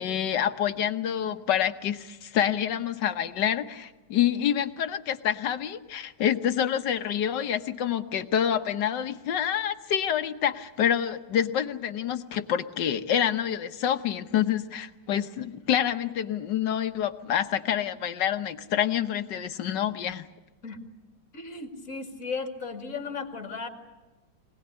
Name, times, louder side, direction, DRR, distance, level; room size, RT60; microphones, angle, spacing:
voice 1, 0.0-20.3, left 9 dB, 70° left, 9 dB, 1.6 m, -27 dB
voice 2, 21.3-23.7, left 4 dB, 45° left, 4 dB, 2.6 m, -35 dB
25.0 x 18.5 x 9.8 m, 1.2 s
omnidirectional pair, 2.0 m